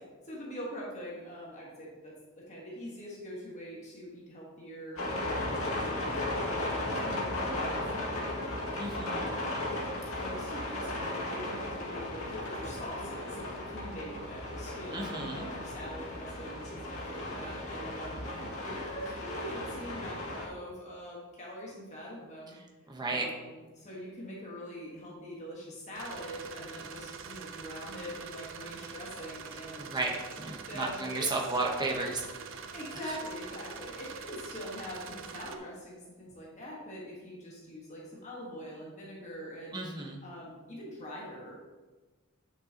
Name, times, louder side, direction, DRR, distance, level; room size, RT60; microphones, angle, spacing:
voice 1, 0.2-9.4 10.1-22.6 23.0-30.0 30.7-31.5 31.9-32.1 32.7-41.6, equal, 30° left, -4 dB, 1.5 m, -44 dB
sound 1, 5.0-20.5, left 1 dB, 70° left, 2.1 m, -35 dB
voice 2, 8.8-9.3 14.9-15.5 22.9-23.3 29.8-32.2 32.5-32.6 39.7-40.2, right 2 dB, 20° right, -1 dB, 1.0 m, -33 dB
sound 2, 25.9-35.6, right 5 dB, 60° right, 0.6 m, -44 dB
8.4 x 6.7 x 2.9 m, 1.3 s
head